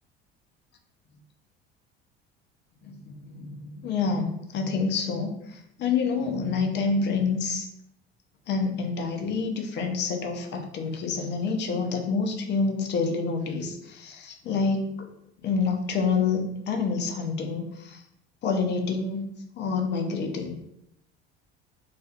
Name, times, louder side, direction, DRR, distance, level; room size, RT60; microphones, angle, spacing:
voice 1, 2.9-5.3 5.8-7.7 8.5-15.0 15.4-18.0 18.4-19.3 19.6-20.6, left 4 dB, 35° left, 3 dB, 0.5 m, -27 dB
2.4 x 2.4 x 2.4 m, 0.79 s
figure-of-eight pair, 60°, 32 cm